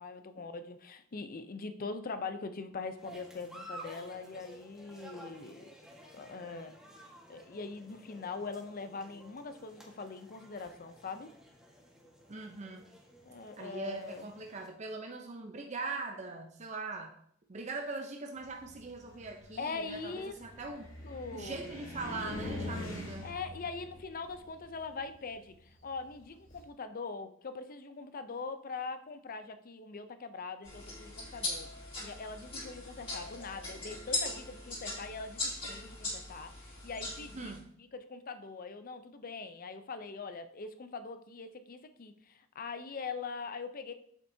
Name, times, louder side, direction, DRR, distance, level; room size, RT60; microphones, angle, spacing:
voice 1, 0.0-5.7 6.1-6.8 7.3-11.3 13.2-14.3 19.6-20.4 21.0-21.7 23.2-43.9, left 4 dB, 45° left, 10 dB, 0.6 m, -42 dB
sound 1, 3.0-14.7, right 1 dB, 5° right, 1.5 m, -53 dB
voice 2, 12.3-12.9 13.6-17.1 17.5-20.9 21.3-23.3 37.3-37.6, right 3 dB, 35° right, 3 dB, 0.6 m, -41 dB
Car, 18.4-26.6, left 1 dB, 75° left, 2.4 m, -44 dB
sound 2, 30.6-37.6, left 2 dB, 30° left, 2.7 m, -39 dB
8.1 x 7.1 x 2.7 m, 0.67 s
head